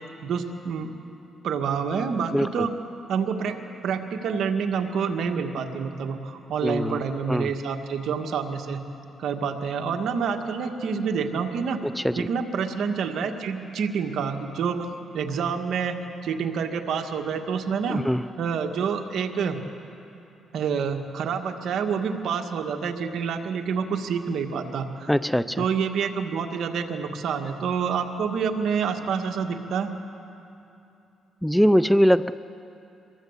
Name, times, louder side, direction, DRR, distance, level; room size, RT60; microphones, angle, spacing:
voice 1, 0.2-0.9 1.4-2.7 3.1-3.6 3.8-8.8 9.2-11.8 12.2-14.9 15.1-18.0 18.4-19.6 20.5-25.1 25.6-29.9, right 6 dB, 70° right, 4 dB, 1.9 m, -27 dB
voice 2, 2.3-2.7 6.6-7.0 7.3-7.5 11.8-12.3 17.9-18.2 25.1-25.6 31.4-32.3, equal, ahead, 14 dB, 0.5 m, -22 dB
24.5 x 21.0 x 8.3 m, 2.8 s
cardioid pair, 90°, 0 cm